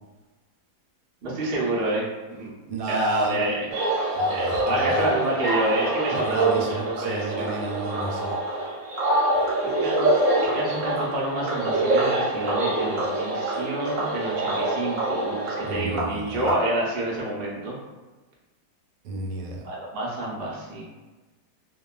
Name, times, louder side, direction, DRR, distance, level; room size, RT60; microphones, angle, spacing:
voice 1, 1.2-2.5 2.9-7.5 9.8-10.1 10.5-17.8 19.6-20.8, right 1 dB, 75° right, -5 dB, 0.5 m, -28 dB
voice 2, 2.7-3.5 4.1-5.0 6.1-8.4 15.6-16.5 19.0-19.6, right 2 dB, 90° right, 0 dB, 1.2 m, -33 dB
sound 1, 3.7-16.5, right 1 dB, 60° right, 0.9 m, -25 dB
2.8 x 2.1 x 2.3 m, 1.2 s
omnidirectional pair, 1.8 m